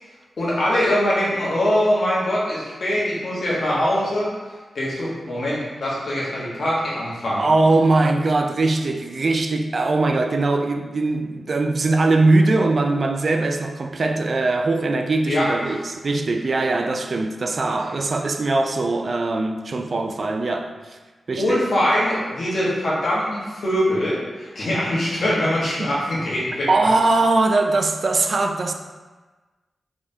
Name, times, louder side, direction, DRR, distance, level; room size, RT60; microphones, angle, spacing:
voice 1, 0.4-4.3 4.7-7.4 15.2-15.7 21.4-26.7, left 1 dB, 65° left, 1.2 m, -22 dB
voice 2, 7.4-21.0 21.3-21.6 25.8-25.9 26.7-28.7, right 2 dB, 60° right, 0.3 m, -21 dB
3.4 x 3.4 x 2.7 m
cardioid pair, 50°, 0 cm